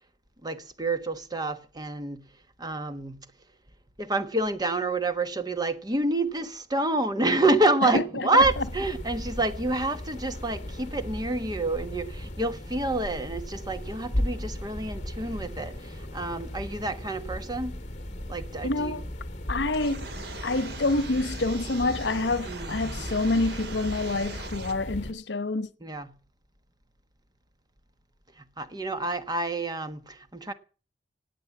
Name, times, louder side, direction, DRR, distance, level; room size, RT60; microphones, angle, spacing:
voice 1, 0.4-2.2 2.6-3.2 4.0-17.8 18.3-18.9 22.4-23.1 25.8-26.1 28.6-30.5, right 2 dB, 25° right, 1.2 m, -28 dB
voice 2, 7.8-8.7 18.6-19.0 19.5-20.1 20.4-25.7, left 2 dB, 85° left, 0.9 m, -27 dB
sound 1, 8.4-25.1, left 1 dB, 45° left, 2.2 m, -36 dB
sound 2, 19.7-24.7, right 3 dB, 70° right, 2.0 m, -40 dB
18.5 x 8.1 x 7.1 m
head